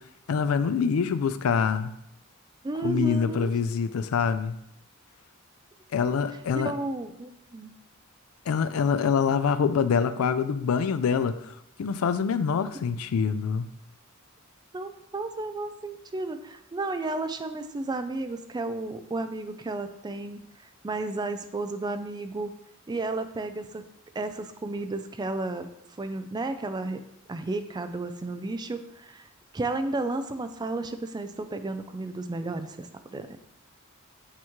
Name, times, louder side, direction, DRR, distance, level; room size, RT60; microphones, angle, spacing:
voice 1, 0.3-1.9 2.8-4.5 5.9-6.7 8.5-11.4 11.8-13.7, left 6 dB, 85° left, 13 dB, 0.4 m, -25 dB
voice 2, 2.6-3.5 6.5-7.7 14.7-22.5 22.9-23.8 24.2-25.7 26.0-29.3 29.5-33.4, right 2 dB, 20° right, 9 dB, 0.4 m, -33 dB
8.6 x 3.1 x 3.6 m, 0.78 s
head